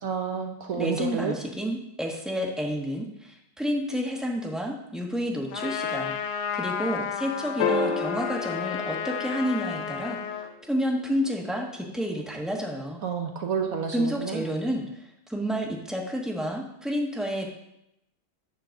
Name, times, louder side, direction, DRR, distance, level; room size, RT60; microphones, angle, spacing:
voice 1, 0.0-1.3 13.0-14.4, right 6 dB, 60° right, 3 dB, 0.9 m, -30 dB
voice 2, 0.7-6.1 6.5-10.2 10.6-13.0 13.9-17.5, equal, ahead, -1 dB, 0.8 m, -30 dB
Trumpet, 5.5-10.5, left 7 dB, 90° left, 1.6 m, -32 dB
sound 1, 7.6-10.1 12.3-12.4, left 4 dB, 70° left, 1.6 m, -30 dB
10.0 x 3.9 x 6.9 m, 0.83 s
omnidirectional pair, 2.2 m